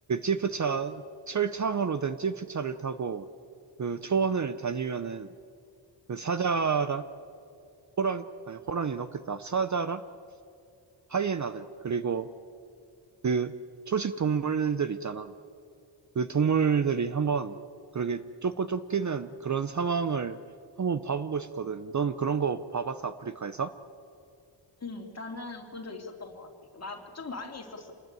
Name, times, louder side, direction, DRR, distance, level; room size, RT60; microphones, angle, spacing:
voice 1, 0.1-3.3 3.8-5.3 6.1-7.1 8.0-10.0 11.1-12.3 13.2-13.5 13.9-15.3 16.2-17.6 17.9-20.4 20.8-23.7, right 6 dB, 35° right, 13 dB, 0.7 m, -29 dB
voice 2, 24.8-27.9, left 3 dB, 30° left, 3 dB, 3.0 m, -40 dB
27.0 x 20.5 x 9.1 m, 2.5 s
wide cardioid pair, 145°, 48 cm